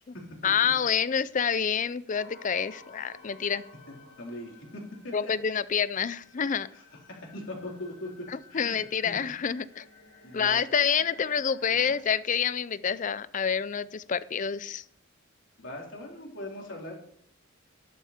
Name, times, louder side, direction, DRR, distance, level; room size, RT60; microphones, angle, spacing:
voice 1, 0.4-3.6 5.1-6.7 8.3-9.9 10.3-14.8, left 7 dB, 40° left, 17 dB, 0.5 m, -28 dB
sound 1, 2.1-12.0, left 3 dB, 80° left, 2.9 m, -54 dB
voice 2, 3.9-5.3 6.7-6.8 7.1-9.2 10.2-10.6 11.8-12.0 15.6-16.9, left 1 dB, 65° left, -1 dB, 3.9 m, -41 dB
12.0 x 12.0 x 4.4 m, 0.65 s
head